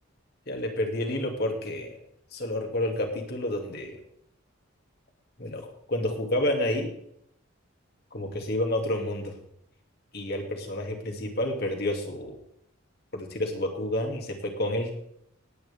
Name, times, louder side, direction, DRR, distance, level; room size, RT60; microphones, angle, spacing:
voice 1, 0.5-2.0 2.3-4.0 5.4-6.9 8.1-9.3 10.1-12.4 13.1-14.9, left 1 dB, 50° left, 2 dB, 2.4 m, -29 dB
19.0 x 9.1 x 3.6 m, 0.72 s
head